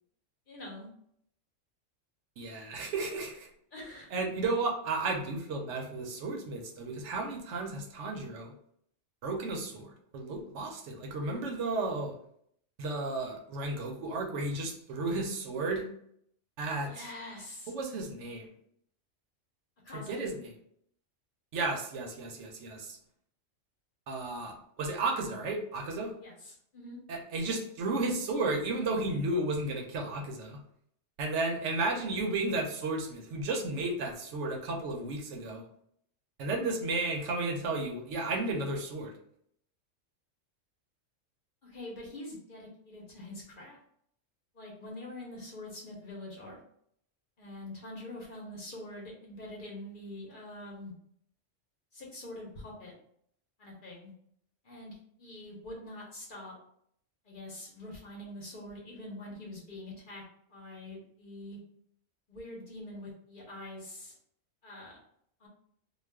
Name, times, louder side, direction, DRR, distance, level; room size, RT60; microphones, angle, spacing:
voice 1, 0.5-0.9 2.8-2.9 3.7-4.1 16.8-17.7 19.8-20.1 26.2-27.0 41.6-43.8 44.5-46.6 47.4-50.9 51.9-52.9 53.6-54.1 54.6-56.5 57.2-60.2 60.5-61.6 62.3-64.1 64.6-65.0 65.4-65.5, left 1 dB, 50° left, -3 dB, 0.8 m, -45 dB
voice 2, 2.4-3.5 4.1-8.5 9.2-12.1 12.8-15.9 16.6-16.9 17.7-18.5 19.9-20.5 21.5-23.0 24.1-26.1 27.1-30.6 31.2-35.6 36.4-39.1, right 2 dB, 75° right, 1 dB, 0.9 m, -33 dB
2.3 x 2.3 x 3.3 m, 0.69 s
omnidirectional pair, 1.3 m